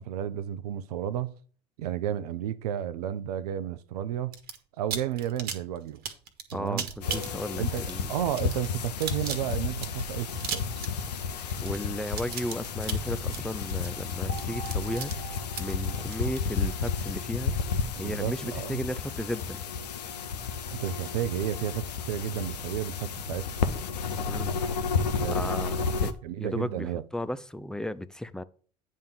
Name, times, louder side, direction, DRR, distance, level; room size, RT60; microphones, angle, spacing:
voice 1, 0.0-1.3 1.8-4.4 4.8-6.0 6.5-7.3 7.5-10.9 18.0-18.8 20.7-23.5 25.2-25.7 26.2-27.0, right 11 dB, 70° right, 0.6 m, -32 dB
sound 1, 4.3-4.6 4.9-17.2, right 7 dB, 50° right, 1.4 m, -37 dB
voice 2, 6.5-8.1 11.6-17.5 18.0-19.6 24.3-24.5 25.3-26.1 26.4-28.4, left 1 dB, 5° left, 0.5 m, -35 dB
sound 2, 7.0-26.1, left 5 dB, 75° left, 0.8 m, -32 dB
sound 3, 7.1-8.6 14.3-17.6, right 1 dB, 35° left, 2.0 m, -47 dB
9.4 x 3.6 x 6.6 m
figure-of-eight pair, 70°, 21 cm